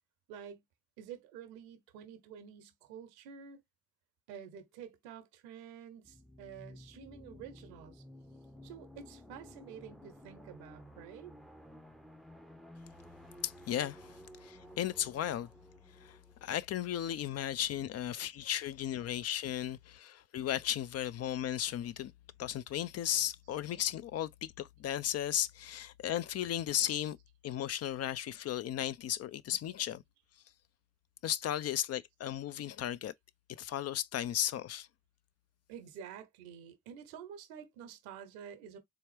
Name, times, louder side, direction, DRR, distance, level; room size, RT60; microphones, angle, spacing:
voice 1, 0.3-0.6 1.0-3.6 4.3-8.0 8.6-11.3 35.7-38.8, right 8 dB, 85° right, 0.7 m, -49 dB
sound 1, 6.0-17.6, equal, ahead, 0.5 m, -54 dB
voice 2, 13.4-15.5 16.0-22.1 22.4-27.2 27.4-30.0 31.2-33.1 33.5-34.9, left 11 dB, 50° left, 0.4 m, -35 dB
3.5 x 2.8 x 3.2 m
hypercardioid pair, 50°, 33 cm